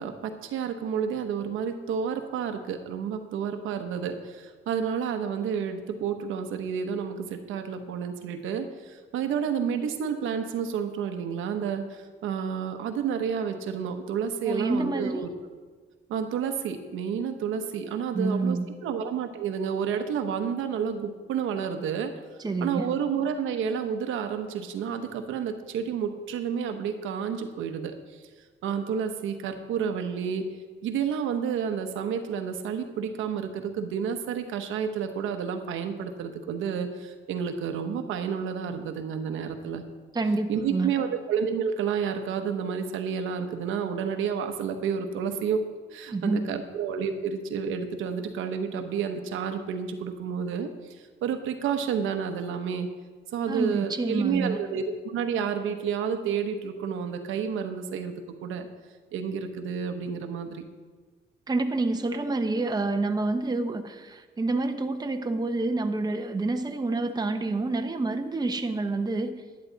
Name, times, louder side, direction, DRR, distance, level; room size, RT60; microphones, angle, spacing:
voice 1, 0.0-15.3 16.1-22.1 22.6-27.9 28.6-30.5 30.8-39.8 40.5-45.6 45.9-52.9 53.3-58.7 59.1-60.6, right 7 dB, 85° right, 7 dB, 1.0 m, -30 dB
voice 2, 14.5-15.2 18.1-18.7 22.4-22.9 40.1-40.9 46.1-46.6 53.5-54.6 61.5-69.3, right 3 dB, 20° right, 6 dB, 0.8 m, -28 dB
10.5 x 10.5 x 3.9 m, 1.4 s
cardioid pair, 90°, 20 cm